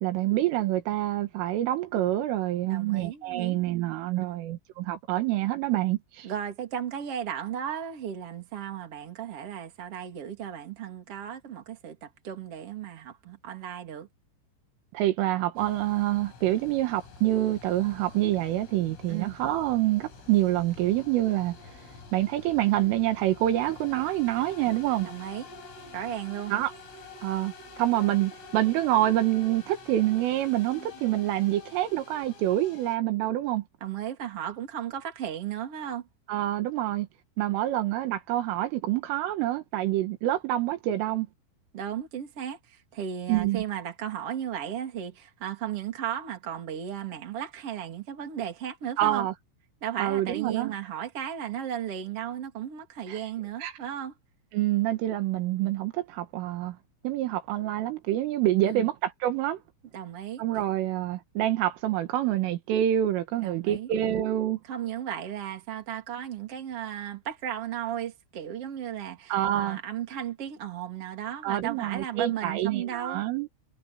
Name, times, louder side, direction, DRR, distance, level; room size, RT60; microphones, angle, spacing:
voice 1, 0.0-6.3 14.9-21.6 22.1-25.1 26.5-26.7 27.2-27.5 27.8-33.6 36.3-37.1 37.4-41.3 43.3-43.6 49.0-49.3 50.0-50.8 53.1-53.2 53.6-53.7 54.5-56.8 57.0-59.6 60.4-64.6 69.3-69.8 71.4-73.5, right 14 dB, 80° right, 4.2 m, -26 dB
voice 2, 2.6-3.6 4.2-4.5 6.2-14.1 19.1-19.4 25.0-25.5 25.9-26.5 33.8-36.1 41.7-49.3 49.8-54.1 58.6-58.9 59.9-60.4 63.4-63.9 64.7-73.2, right 10 dB, 35° right, 3.2 m, -35 dB
sound 1, 15.6-33.0, left 3 dB, 80° left, 9.7 m, -47 dB
omnidirectional pair, 5.8 m